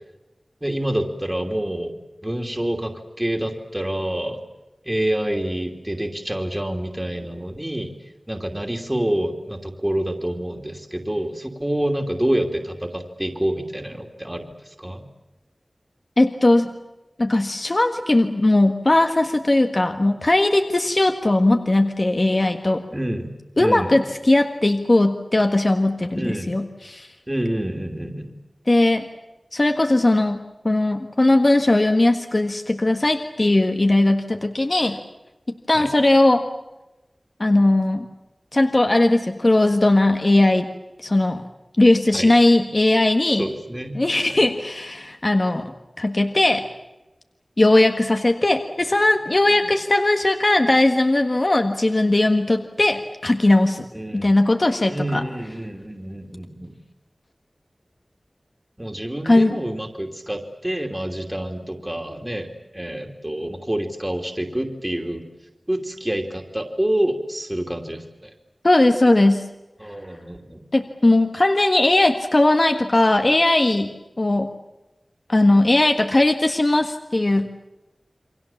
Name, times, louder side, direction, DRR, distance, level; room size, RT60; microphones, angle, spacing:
voice 1, 0.6-2.0 2.2-4.4 4.8-7.9 8.3-15.0 22.9-23.9 26.1-26.5 27.3-28.3 35.7-35.9 42.1-42.3 43.4-44.0 44.3-44.4 49.5-49.7 53.9-54.3 54.9-56.8 58.8-65.2 65.7-68.3 69.8-70.6, right 1 dB, 20° right, 3 dB, 2.9 m, -27 dB
voice 2, 16.2-16.7 17.2-22.8 23.6-27.1 28.7-29.1 29.5-35.0 35.7-36.4 37.4-38.1 38.5-40.7 41.0-41.4 41.8-43.5 44.0-45.7 46.0-46.7 47.6-53.9 54.1-55.2 59.2-59.6 68.6-69.4 70.7-74.5 75.3-77.5, left 2 dB, 45° left, 5 dB, 1.6 m, -18 dB
29.0 x 23.5 x 7.3 m, 1.0 s
wide cardioid pair, 55°, 0 cm